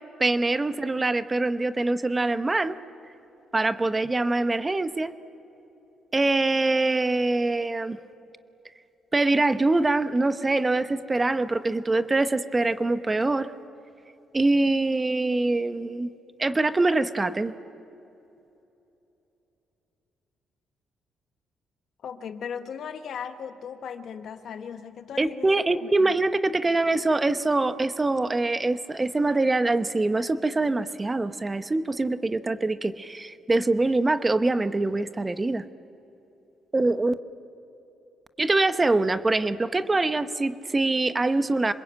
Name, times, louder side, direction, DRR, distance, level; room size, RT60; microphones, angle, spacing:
voice 1, 0.2-2.7 3.5-5.1 6.1-8.0 9.1-13.5 14.3-16.1 16.4-17.5 25.2-35.6 36.7-37.1 38.4-41.7, right 2 dB, 20° right, 11 dB, 0.9 m, -24 dB
voice 2, 22.0-26.1 39.1-39.2, left 7 dB, 65° left, 8 dB, 1.5 m, -38 dB
26.0 x 21.5 x 9.1 m, 2.9 s
cardioid pair, 90°, 0 cm